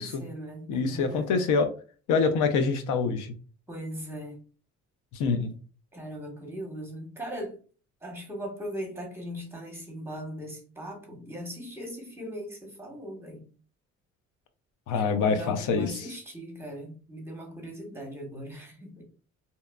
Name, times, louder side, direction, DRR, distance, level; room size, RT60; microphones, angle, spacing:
voice 1, 0.0-1.4 3.7-4.4 5.9-7.6 8.0-13.4 14.9-19.0, equal, 10° right, 0.9 m, -39 dB
voice 2, 0.7-1.7 2.1-3.3 5.1-5.5 14.9-16.1, left 5 dB, 85° left, 0.5 m, -25 dB
2.7 x 2.2 x 2.2 m
cardioid pair, 90°, 30 cm